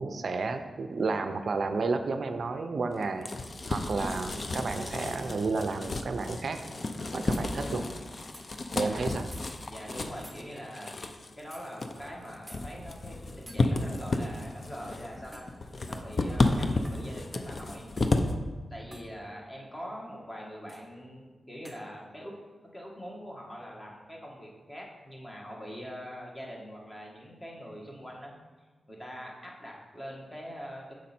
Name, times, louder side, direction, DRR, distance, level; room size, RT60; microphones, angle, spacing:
voice 1, 0.0-3.3 3.7-6.7 7.1-8.0 8.7-9.3, right 4 dB, 70° right, 8 dB, 0.4 m, -31 dB
sound 1, 2.9-18.3, left 2 dB, 50° left, 0.5 m, -32 dB
sound 2, 7.3-7.5 8.3-8.5 9.3-9.4 10.2-10.4 11.5-11.6 12.5-12.6 13.5-13.6 15.3-15.6 16.8-17.1 18.0-18.2 18.9-19.1 20.7-20.8 21.6-21.8, equal, ahead, 1.0 m, -49 dB
voice 2, 9.7-15.4 15.9-17.9 18.7-22.3 22.7-28.3 28.9-30.9, equal, 25° left, -2 dB, 1.5 m, -43 dB
6.2 x 5.1 x 4.3 m, 1.3 s
cardioid pair, 75°, 0 cm